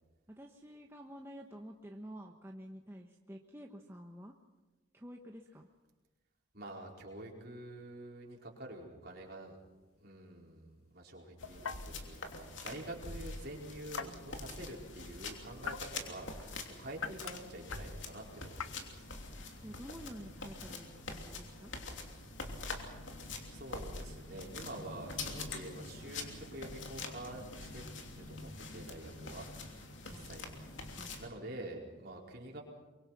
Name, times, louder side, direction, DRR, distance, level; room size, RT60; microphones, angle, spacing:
voice 1, 0.3-4.4 4.9-5.7 14.0-14.7 19.6-21.7 30.0-30.3 30.9-31.2, equal, 10° right, 2 dB, 1.1 m, -50 dB
voice 2, 6.5-9.6 10.0-19.1 23.1-27.8 28.1-30.6 30.9-32.6, right 1 dB, 50° right, -1 dB, 4.6 m, -47 dB
sound 1, 9.1-22.1, left 6 dB, 85° left, 1.0 m, -49 dB
sound 2, 11.4-31.3, left 3 dB, 65° left, 3.0 m, -45 dB
24.0 x 23.5 x 5.9 m, 1.2 s
head